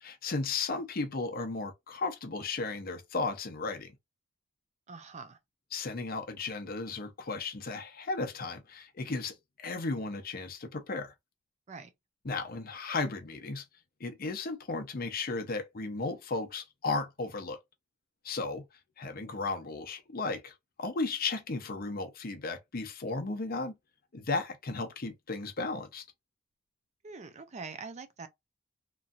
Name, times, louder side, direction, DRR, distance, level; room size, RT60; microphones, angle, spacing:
voice 1, 0.0-3.9 5.7-11.1 12.2-13.6 14.0-17.6 18.2-18.7 19.0-23.7 24.1-26.0, left 3 dB, 50° left, 0.7 m, -35 dB
voice 2, 4.9-5.4 11.7-11.9 27.0-28.3, right 4 dB, 35° right, 0.4 m, -44 dB
3.0 x 2.6 x 2.4 m
head